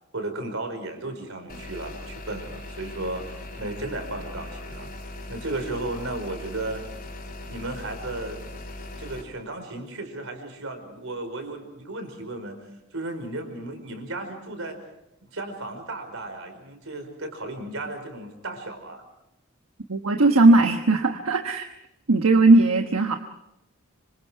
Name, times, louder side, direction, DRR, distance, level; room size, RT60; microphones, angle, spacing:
voice 1, 0.1-4.9 5.3-6.8 7.5-8.4 9.0-12.6 12.9-14.8 15.3-19.0, right 2 dB, 70° right, 6 dB, 5.1 m, -34 dB
sound 1, 1.5-9.2, left 1 dB, 45° left, 4.1 m, -39 dB
voice 2, 19.9-21.7 22.1-23.2, right 2 dB, 90° right, 5 dB, 1.2 m, -18 dB
26.5 x 25.5 x 4.7 m, 0.86 s
head